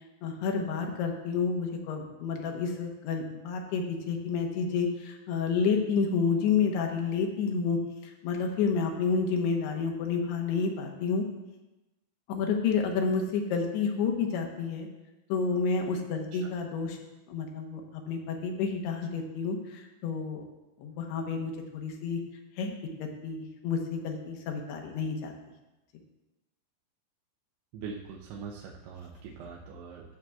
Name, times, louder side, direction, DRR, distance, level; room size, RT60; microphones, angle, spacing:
voice 1, 0.2-11.3 12.3-14.9 15.3-17.0 17.3-20.4 20.8-22.2 22.6-25.3, left 5 dB, 90° left, 3 dB, 3.0 m, -30 dB
voice 2, 27.7-30.2, right 5 dB, 90° right, -1 dB, 2.8 m, -42 dB
14.0 x 7.4 x 2.3 m, 1.0 s
omnidirectional pair, 4.6 m